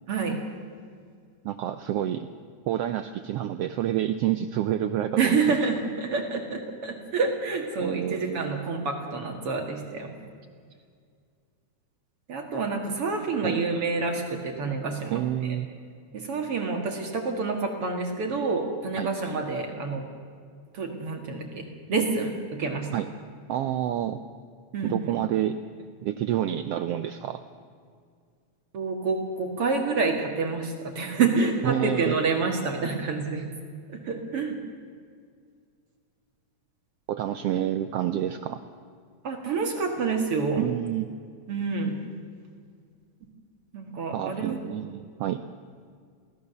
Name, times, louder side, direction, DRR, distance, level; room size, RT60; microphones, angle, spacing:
voice 1, 0.1-0.4 5.2-10.2 12.3-15.6 16.1-20.1 20.7-22.9 24.7-25.1 28.7-33.5 33.9-34.6 39.2-40.6 41.5-41.9 43.7-44.6, right 4 dB, 55° right, 3 dB, 2.5 m, -28 dB
voice 2, 1.4-2.3 2.7-5.6 7.8-8.6 13.1-13.5 15.1-15.7 19.0-19.1 22.9-23.1 23.5-24.2 24.8-25.6 26.0-27.4 31.6-32.2 37.1-38.6 40.6-41.1 44.1-45.4, right 11 dB, 80° right, 9 dB, 1.4 m, -28 dB
23.0 x 17.0 x 6.8 m, 2.1 s
omnidirectional pair, 3.4 m